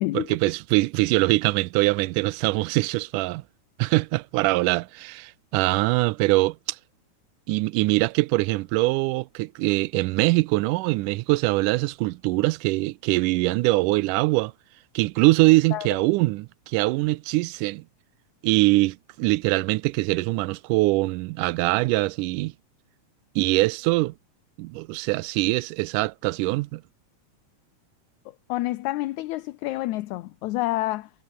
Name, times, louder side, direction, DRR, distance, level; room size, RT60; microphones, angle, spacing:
voice 1, 0.1-3.4 3.8-6.8 7.5-14.5 15.0-17.8 18.4-22.5 23.4-24.1 24.6-26.8, right 21 dB, 85° right, 2.1 m, -23 dB
voice 2, 28.5-31.1, left 17 dB, 75° left, 2.0 m, -28 dB
omnidirectional pair, 3.6 m